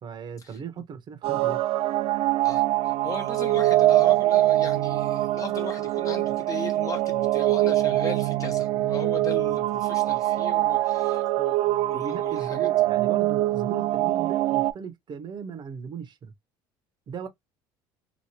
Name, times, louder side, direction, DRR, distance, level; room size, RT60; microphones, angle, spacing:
voice 1, 0.0-1.6 2.5-2.6 8.2-8.6 11.9-16.3 17.1-17.3, right 6 dB, 45° right, 1.1 m, -37 dB
sound 1, 1.2-14.7, right 15 dB, 60° right, 0.4 m, -24 dB
voice 2, 2.4-12.7, left 4 dB, 30° left, 1.1 m, -38 dB
3.0 x 2.7 x 2.8 m
supercardioid pair, 95°, 11 cm